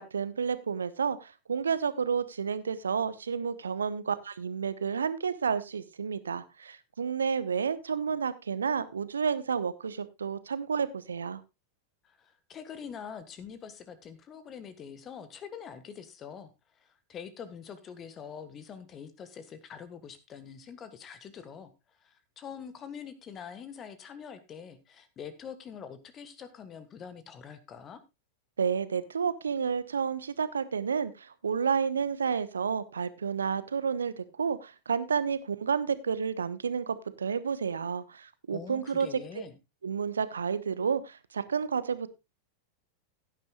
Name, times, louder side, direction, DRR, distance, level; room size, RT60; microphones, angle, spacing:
voice 1, 0.0-11.4 28.6-39.2 39.8-42.1, right 6 dB, 70° right, 15 dB, 1.0 m, -30 dB
voice 2, 12.0-28.0 38.5-39.5, left 7 dB, 25° left, 12 dB, 1.4 m, -45 dB
16.5 x 10.0 x 2.4 m, 0.24 s
figure-of-eight pair, 90°, 0 cm